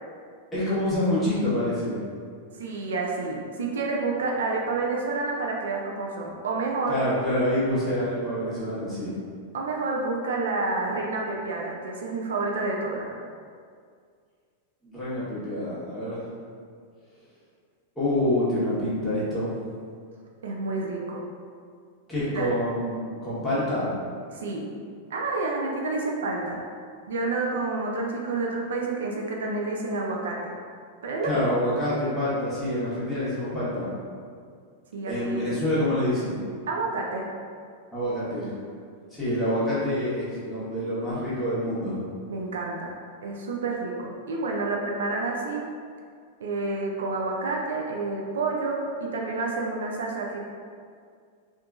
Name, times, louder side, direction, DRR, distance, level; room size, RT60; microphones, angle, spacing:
voice 1, 0.5-2.0 6.9-9.1 14.8-16.2 17.9-19.5 22.1-23.9 31.2-33.9 35.1-36.4 37.9-38.5 39.1-42.0, left 1 dB, 5° left, -12 dB, 1.2 m, -27 dB
voice 2, 2.6-7.0 9.5-13.1 20.4-21.2 22.3-22.5 24.3-24.6 25.1-26.6 27.1-30.5 31.0-31.4 34.9-35.6 36.7-37.3 42.3-42.9 43.2-45.7 46.4-50.4, right 3 dB, 85° right, -1 dB, 0.4 m, -29 dB
2.7 x 2.5 x 2.4 m, 2.1 s
hypercardioid pair, 120°, 0 cm